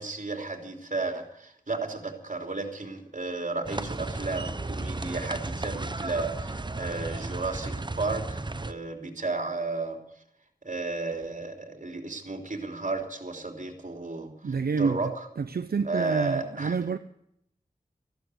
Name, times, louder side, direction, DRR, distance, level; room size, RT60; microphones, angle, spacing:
voice 1, 0.0-10.0 10.6-15.1 15.8-16.8, right 3 dB, 55° right, 3.3 m, -33 dB
sound 1, 3.7-8.7, right 2 dB, 30° right, 0.8 m, -34 dB
voice 2, 14.4-15.0 15.4-17.0, right 5 dB, 85° right, 0.6 m, -28 dB
14.5 x 12.5 x 7.9 m
wide cardioid pair, 50°, 15 cm